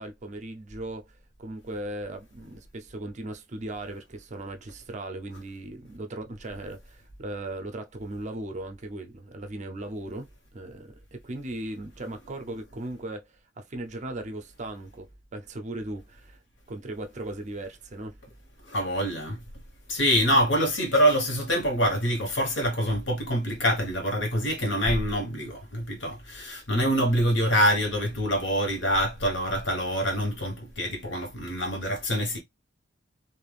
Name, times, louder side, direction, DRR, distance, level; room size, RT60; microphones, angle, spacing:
voice 1, 0.0-16.4 16.7-18.2, right 1 dB, 40° right, 0.5 m, -38 dB
voice 2, 18.7-19.4 19.9-32.4, equal, 65° left, 1.2 m, -25 dB
3.3 x 2.5 x 2.3 m
head